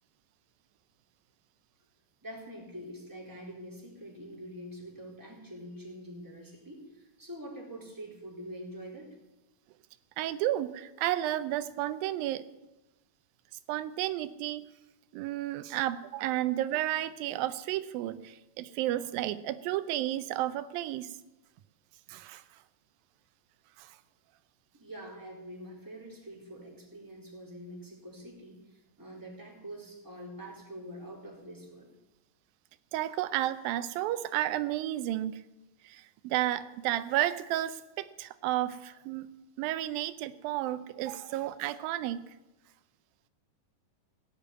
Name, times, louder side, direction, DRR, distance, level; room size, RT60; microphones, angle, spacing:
voice 1, 2.2-9.1 24.7-31.9 41.3-41.4, equal, 5° right, -2 dB, 3.7 m, -45 dB
voice 2, 10.2-12.4 13.7-14.7 15.1-21.1 22.1-22.4 23.8-24.0 32.9-35.4 35.8-39.3 39.6-42.2, right 14 dB, 90° right, 13 dB, 2.5 m, -32 dB
17.0 x 8.8 x 9.5 m, 1.0 s
omnidirectional pair, 4.0 m